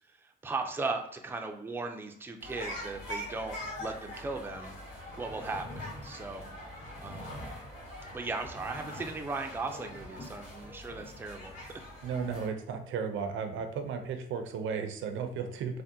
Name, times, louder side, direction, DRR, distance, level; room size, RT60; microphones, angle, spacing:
voice 1, 0.2-6.4 7.0-7.3 8.1-11.8, right 3 dB, 10° right, 4 dB, 0.4 m, -37 dB
sound 1, 2.4-12.5, left 1 dB, 80° left, 1.2 m, -43 dB
voice 2, 12.0-15.8, right 6 dB, 75° right, 7 dB, 0.5 m, -34 dB
3.5 x 2.1 x 2.7 m, 0.73 s
cardioid pair, 90°, 20 cm